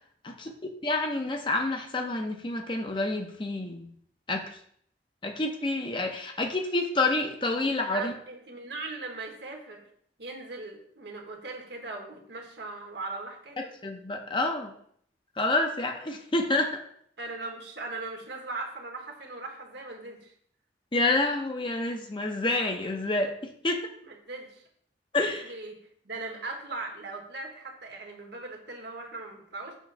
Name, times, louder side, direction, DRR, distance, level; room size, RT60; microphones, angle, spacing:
voice 1, 0.2-3.9 4.3-4.5 5.2-8.1 13.6-14.7 15.4-16.8 20.9-23.9 25.1-25.4, left 2 dB, 25° left, 4 dB, 0.6 m, -28 dB
voice 2, 7.9-9.8 10.2-13.6 17.2-20.3 24.0-24.6 25.4-25.8 26.0-29.8, right 3 dB, 70° right, 2 dB, 1.4 m, -39 dB
7.2 x 3.1 x 5.6 m, 0.65 s
head